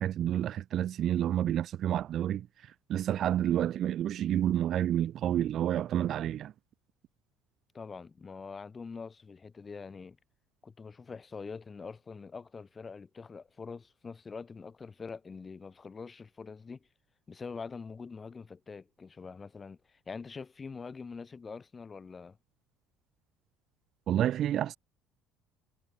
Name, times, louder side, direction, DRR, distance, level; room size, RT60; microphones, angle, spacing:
voice 1, 0.0-6.5 24.1-24.8, right 11 dB, 40° right, 1.0 m, -29 dB
voice 2, 7.7-10.2 10.6-16.9 17.3-22.4, left 5 dB, 20° left, 5.4 m, -44 dB
cardioid pair, 160°, 0 cm